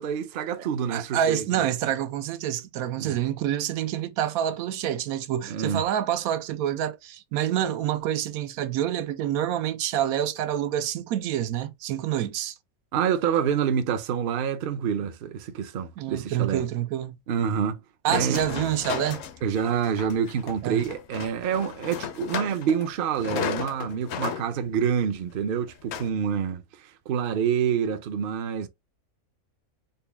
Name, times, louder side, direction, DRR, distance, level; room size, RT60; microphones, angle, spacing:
voice 1, 0.0-1.7 3.0-3.2 5.5-5.8 12.9-16.6 17.3-17.8 18.1-18.5 19.4-28.7, right 7 dB, 60° right, 0.6 m, -27 dB
voice 2, 0.6-12.6 16.0-17.2 18.0-19.2 20.6-20.8, right 11 dB, 85° right, 1.0 m, -27 dB
sound 1, 18.1-22.9 23.1-24.5 25.0-25.1 25.7-26.1, left 8 dB, 65° left, 0.7 m, -34 dB
4.0 x 2.2 x 3.4 m
omnidirectional pair, 1.5 m